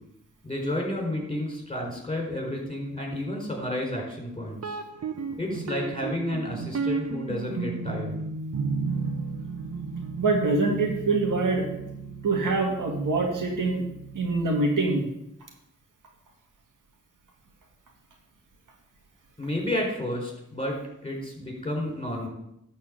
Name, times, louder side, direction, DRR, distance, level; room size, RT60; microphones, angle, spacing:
voice 1, 0.4-4.8 5.4-8.2 19.4-22.3, left 1 dB, 20° left, 0 dB, 4.2 m, -31 dB
sound 1, 4.6-14.4, right 4 dB, 55° right, 1.0 m, -34 dB
voice 2, 10.2-11.7 12.2-13.8 14.1-15.1, right 3 dB, 90° right, 1 dB, 1.9 m, -24 dB
11.5 x 4.3 x 7.5 m, 0.81 s
cardioid pair, 60°, 31 cm